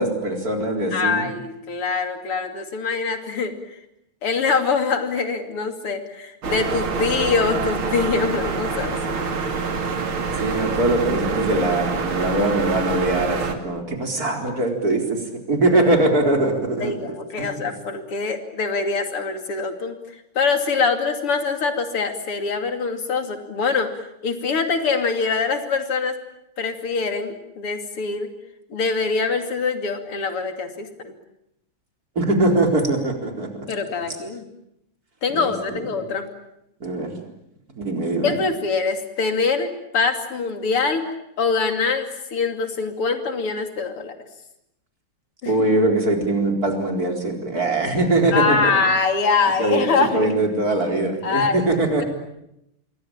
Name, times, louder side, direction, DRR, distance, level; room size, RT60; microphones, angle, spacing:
voice 1, 0.0-1.3 10.4-15.2 15.5-17.0 17.3-17.5 32.2-33.7 35.3-35.9 36.8-37.1 37.8-38.3 45.4-48.7 49.6-49.9 50.1-52.0, right 2 dB, 40° right, 3 dB, 4.7 m, -22 dB
voice 2, 0.9-3.6 4.2-9.2 16.8-20.0 20.4-23.9 24.2-26.2 26.6-28.3 28.7-31.1 33.7-34.5 35.2-36.3 38.2-44.1 45.4-45.6 48.3-50.3 51.2-51.7, left 4 dB, 85° left, 7 dB, 3.6 m, -24 dB
sound 1, 6.4-13.5, right 4 dB, 70° right, 3.3 m, -26 dB
28.0 x 23.0 x 8.8 m, 0.82 s
omnidirectional pair, 2.4 m